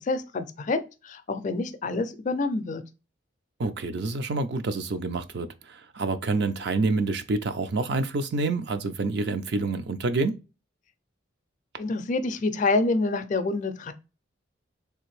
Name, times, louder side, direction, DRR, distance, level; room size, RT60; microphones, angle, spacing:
voice 1, 0.1-2.8 11.8-13.9, left 3 dB, 40° left, 0.4 m, -27 dB
voice 2, 3.6-10.4, right 3 dB, 60° right, 0.4 m, -27 dB
3.4 x 2.5 x 3.1 m
head